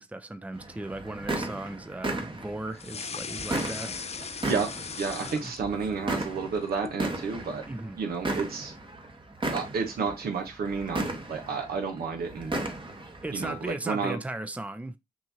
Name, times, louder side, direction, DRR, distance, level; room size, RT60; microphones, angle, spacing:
voice 1, 0.0-4.0 5.2-5.5 7.7-8.0 13.2-15.0, right 1 dB, 10° right, 0.6 m, -37 dB
sound 1, 0.5-13.7, right 2 dB, 35° right, 1.2 m, -36 dB
sound 2, 2.8-6.0 6.3-7.0, left 6 dB, 40° left, 0.5 m, -38 dB
voice 2, 5.0-7.6 8.0-8.7 9.5-12.5 13.3-14.2, right 5 dB, 80° right, 1.2 m, -31 dB
6.1 x 2.8 x 2.8 m
supercardioid pair, 40°, 16 cm